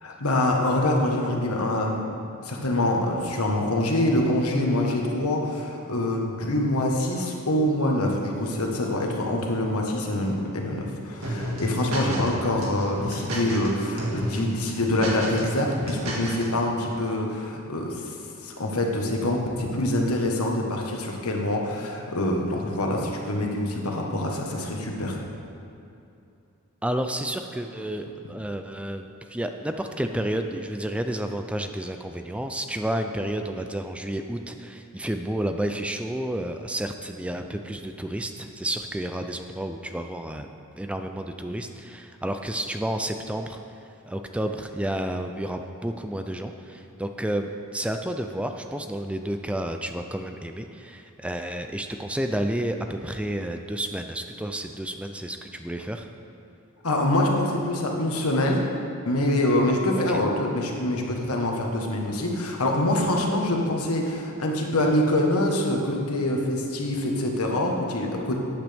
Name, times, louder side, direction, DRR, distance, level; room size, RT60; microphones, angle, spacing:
voice 1, 0.0-2.0 2.4-18.1 18.4-25.2 56.8-58.6 59.0-68.3, left 1 dB, 90° left, 0 dB, 1.4 m, -25 dB
sound 1, 11.2-12.3 12.6-13.7 14.0-14.4 14.7-16.4, right 1 dB, 75° right, 1.9 m, -31 dB
voice 2, 26.8-40.5 40.8-43.6 44.1-56.0 59.9-60.2, right 1 dB, 5° right, 6 dB, 0.4 m, -31 dB
13.5 x 8.9 x 3.5 m, 2.7 s
head